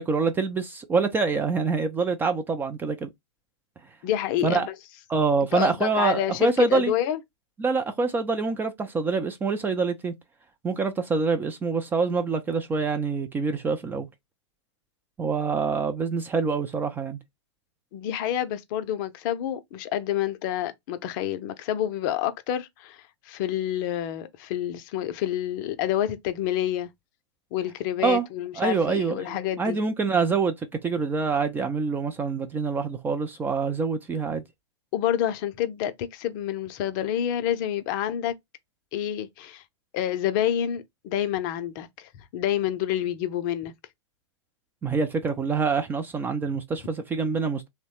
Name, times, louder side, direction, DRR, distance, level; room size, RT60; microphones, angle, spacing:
voice 1, 0.0-3.1 4.4-4.7 5.1-6.9 7.6-10.1 10.6-14.1 15.2-17.2 28.0-28.3 28.6-30.5 30.8-34.4 44.8-47.7, right 4 dB, 15° right, 0.3 m, -25 dB
voice 2, 4.0-4.7 5.5-7.2 17.9-26.9 27.5-29.8 34.9-38.3 38.9-39.6 39.9-43.7, left 11 dB, 40° left, 0.5 m, -28 dB
2.9 x 2.1 x 2.8 m
hypercardioid pair, 120°, 16 cm